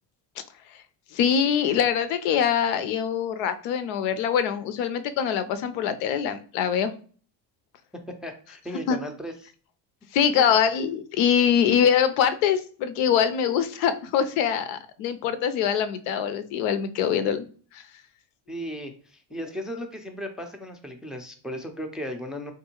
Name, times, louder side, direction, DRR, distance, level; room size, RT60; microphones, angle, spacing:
voice 1, 1.1-6.9 8.9-9.0 10.1-17.5 17.7-17.8, left 8 dB, 80° left, 11 dB, 0.6 m, -23 dB
voice 2, 8.1-9.3 18.5-22.5, equal, ahead, 4 dB, 0.4 m, -36 dB
3.6 x 2.6 x 2.9 m, 0.42 s
supercardioid pair, 85°, 49 cm